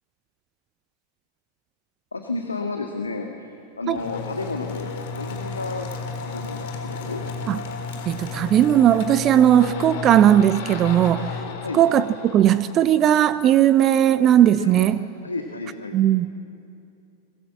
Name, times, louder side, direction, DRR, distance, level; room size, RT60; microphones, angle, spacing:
voice 1, 2.1-3.5 3.8-5.9 6.2-7.2 11.6-11.8 14.6-16.0, left 3 dB, 80° left, 3 dB, 1.8 m, -32 dB
sound 1, 3.9-13.5, left 4 dB, 55° left, 3.7 m, -33 dB
voice 2, 8.1-11.3 11.7-15.0 15.9-16.3, right 11 dB, 30° right, 16 dB, 0.6 m, -17 dB
22.5 x 22.0 x 7.7 m, 2.6 s
figure-of-eight pair, 90°, 0 cm